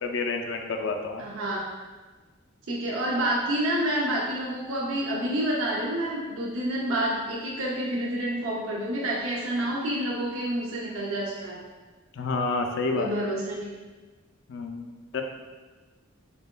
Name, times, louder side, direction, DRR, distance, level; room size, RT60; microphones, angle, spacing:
voice 1, 0.0-1.2 12.1-13.1 14.5-15.2, left 3 dB, 60° left, 4 dB, 0.4 m, -29 dB
voice 2, 1.2-1.7 2.7-11.6 13.0-13.7, right 1 dB, 75° right, -4 dB, 0.6 m, -28 dB
6.6 x 2.3 x 2.2 m, 1.3 s
head